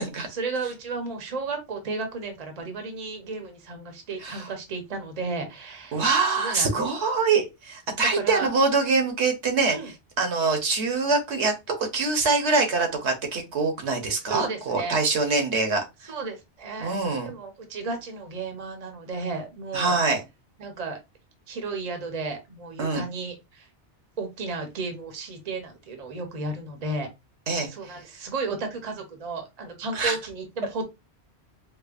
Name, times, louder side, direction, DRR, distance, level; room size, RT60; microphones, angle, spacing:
voice 1, 0.3-6.0 6.3-6.7 8.1-8.5 9.7-9.9 14.2-15.0 16.1-17.0 17.2-20.0 20.6-21.0 21.5-23.7 24.2-27.1 27.7-30.8, right 3 dB, 40° right, 5 dB, 0.8 m, -33 dB
voice 2, 5.9-9.8 10.2-16.1 16.8-17.3 19.7-20.2 22.8-23.0 27.5-27.7 29.9-30.2, right 4 dB, 75° right, 4 dB, 1.1 m, -24 dB
4.7 x 2.0 x 2.4 m, 0.23 s
omnidirectional pair, 1.2 m